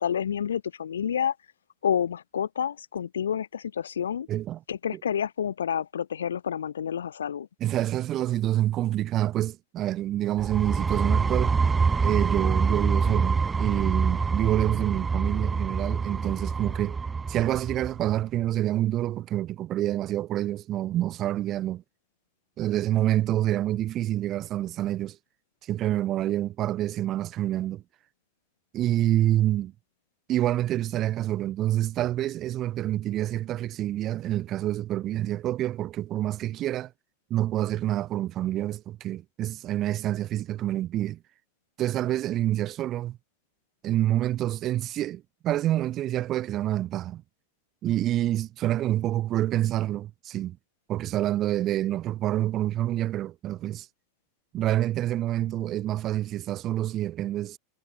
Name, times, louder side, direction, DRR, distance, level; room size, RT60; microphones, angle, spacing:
voice 1, 0.0-1.3 1.8-4.3 4.7-7.5, left 8 dB, 70° left, 2.8 m, -29 dB
voice 2, 4.3-4.6 4.9-5.0 7.6-11.6 12.0-17.0 17.3-21.8 22.6-25.2 25.6-27.8 28.7-29.7 30.3-36.9 37.3-41.2 41.8-43.2 43.8-47.2 47.8-50.6 50.9-53.9 54.5-57.6, right 13 dB, 35° right, 2.3 m, -27 dB
sound 1, 10.4-18.0, right 5 dB, 15° right, 4.3 m, -26 dB
figure-of-eight pair, 80°, 0 cm